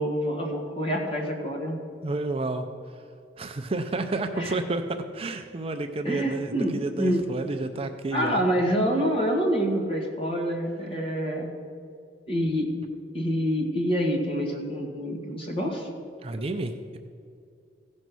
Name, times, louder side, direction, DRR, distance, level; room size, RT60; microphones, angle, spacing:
voice 1, 0.0-1.8 4.3-4.6 6.0-7.3 8.1-11.5 12.3-12.7 13.1-15.9, equal, 30° left, 0 dB, 1.8 m, -27 dB
voice 2, 2.0-2.6 3.4-8.4 16.2-17.0, right 2 dB, 30° right, 7 dB, 0.5 m, -30 dB
15.5 x 5.4 x 6.1 m, 2.4 s
head